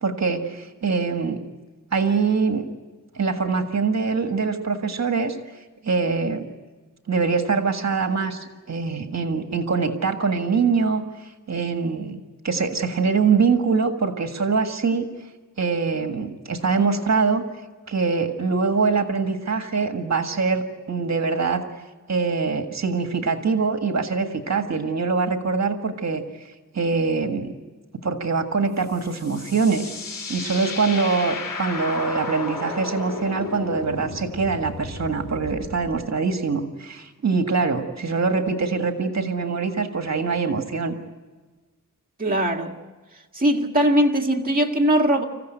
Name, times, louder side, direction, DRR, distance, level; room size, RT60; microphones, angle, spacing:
voice 1, 0.0-1.4 1.9-2.7 3.1-5.4 5.8-6.5 7.1-15.0 15.6-17.4 17.9-21.6 22.1-26.2 26.7-27.5 28.0-29.9 30.3-40.9, right 4 dB, 55° right, 6 dB, 1.8 m, -23 dB
sound 1, 28.8-36.0, left 3 dB, 90° left, 4.1 m, -34 dB
voice 2, 42.2-42.8 43.3-45.2, right 1 dB, 25° right, 1 dB, 1.8 m, -20 dB
27.0 x 15.5 x 9.2 m, 1.3 s
wide cardioid pair, 125°, 32 cm